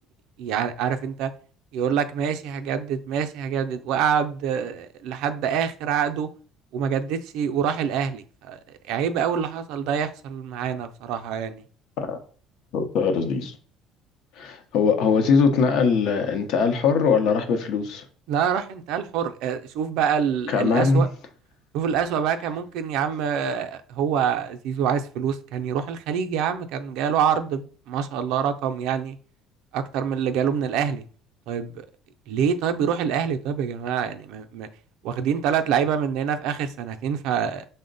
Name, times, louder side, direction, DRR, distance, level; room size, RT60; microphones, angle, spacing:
voice 1, 0.4-1.3 1.7-6.3 6.7-8.6 8.9-11.6 18.3-21.1 21.7-29.2 29.7-31.0 31.5-31.9 32.3-34.7 35.0-37.7, right 8 dB, 75° right, 0.4 m, -26 dB
voice 2, 12.7-13.6 14.4-18.0 20.5-21.0, left 5 dB, 70° left, 0.7 m, -21 dB
5.2 x 2.1 x 3.8 m
cardioid pair, 115°, 0 cm